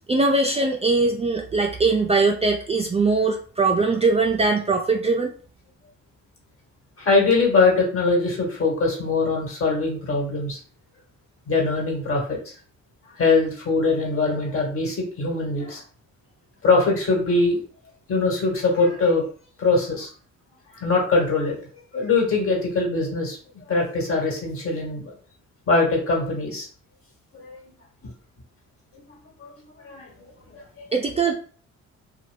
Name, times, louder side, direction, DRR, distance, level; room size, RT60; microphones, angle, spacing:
voice 1, 0.1-5.3 30.9-31.3, right 3 dB, 20° right, 2 dB, 0.4 m, -21 dB
voice 2, 7.0-10.6 11.5-12.5 13.1-15.8 16.6-17.6 18.1-19.3 19.6-20.1 20.7-21.6 21.9-23.4 23.7-25.1 25.7-26.7 27.3-27.6 28.0-28.1 29.4-30.1 30.8-30.9, left 3 dB, 45° left, -1 dB, 1.4 m, -22 dB
2.6 x 2.2 x 3.3 m, 0.43 s
cardioid pair, 90°, 30 cm